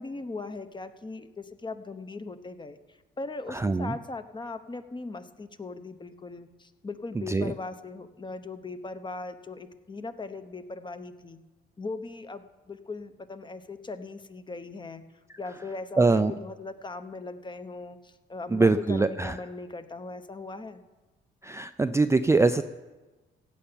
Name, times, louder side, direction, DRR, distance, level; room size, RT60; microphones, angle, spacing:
voice 1, 0.0-11.4 11.8-15.0 15.4-20.8, left 3 dB, 25° left, 10 dB, 0.9 m, -39 dB
voice 2, 3.5-4.0 7.2-7.5 16.0-16.3 18.5-19.4 21.4-22.6, right 3 dB, 15° right, 9 dB, 0.4 m, -23 dB
16.0 x 5.8 x 8.8 m, 1.2 s
cardioid pair, 90°, 20 cm